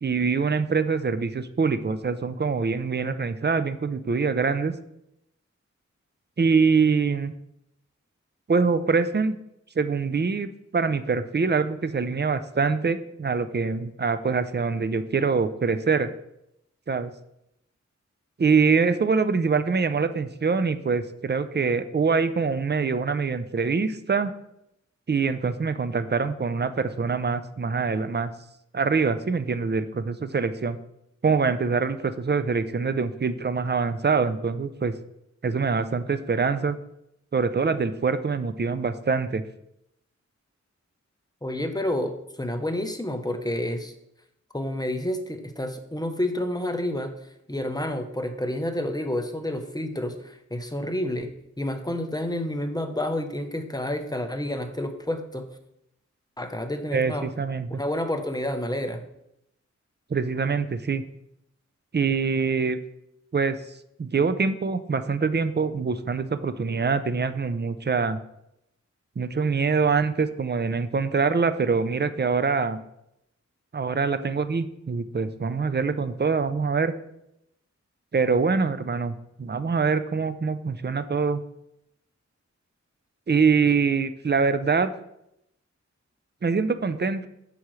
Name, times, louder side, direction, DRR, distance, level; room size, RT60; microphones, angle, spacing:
voice 1, 0.0-4.7 6.4-7.3 8.5-9.4 9.8-16.1 16.9-17.1 18.4-24.3 25.1-28.3 28.7-30.8 31.2-34.9 35.4-36.8 37.3-39.4 56.9-57.8 60.1-61.0 61.9-62.8 63.3-63.6 64.0-68.2 69.2-72.8 73.7-76.9 78.1-81.4 83.3-84.9 86.4-87.3, right 5 dB, 35° right, 11 dB, 0.5 m, -24 dB
voice 2, 41.4-43.9 44.5-47.1 47.5-51.3 51.6-55.5 56.4-57.3 57.7-59.0, left 1 dB, 15° left, 6 dB, 0.8 m, -29 dB
8.2 x 6.2 x 3.2 m, 0.81 s
wide cardioid pair, 55°, 29 cm